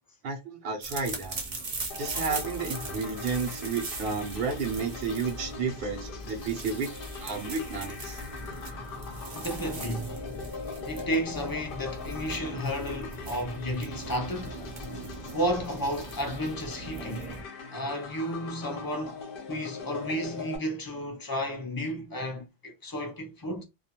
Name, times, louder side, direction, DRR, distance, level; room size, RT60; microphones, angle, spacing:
voice 1, 0.2-1.4 2.0-6.9 7.2-8.2, right 5 dB, 70° right, 0.9 m, -32 dB
sound 1, 0.8-17.4, right 2 dB, 40° right, 0.7 m, -40 dB
sound 2, 1.9-20.6, left 5 dB, 70° left, 0.8 m, -42 dB
voice 2, 9.3-10.2 10.8-14.6 15.3-17.2 17.7-19.2 19.5-23.6, equal, 30° left, 0.4 m, -32 dB
2.4 x 2.1 x 2.8 m
omnidirectional pair, 1.0 m